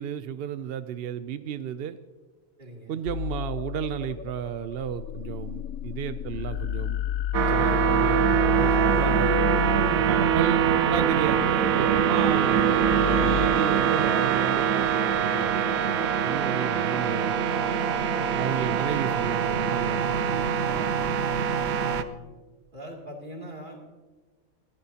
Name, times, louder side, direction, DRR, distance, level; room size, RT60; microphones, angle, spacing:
voice 1, 0.0-2.0 2.9-7.0 7.5-9.4 10.0-11.5 11.8-17.4 18.3-21.4, right 9 dB, 65° right, 11 dB, 0.6 m, -33 dB
voice 2, 2.6-3.0 21.8-22.3 22.7-23.8, equal, 35° right, -1 dB, 2.8 m, -42 dB
sound 1, 3.1-13.5, left 11 dB, 75° left, 1.0 m, -32 dB
sound 2, 7.3-22.0, right 8 dB, 85° right, 1.2 m, -23 dB
21.5 x 14.5 x 2.8 m, 1.3 s
omnidirectional pair, 1.5 m